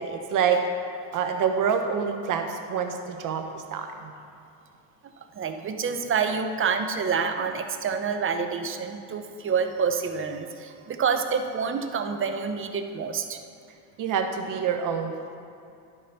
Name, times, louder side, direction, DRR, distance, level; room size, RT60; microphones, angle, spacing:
voice 1, 0.0-4.1 14.0-15.2, right 6 dB, 45° right, 5 dB, 1.1 m, -27 dB
voice 2, 5.0-13.4, right 6 dB, 30° right, 7 dB, 0.7 m, -28 dB
12.0 x 5.1 x 5.6 m, 2.5 s
hypercardioid pair, 90°, 45 cm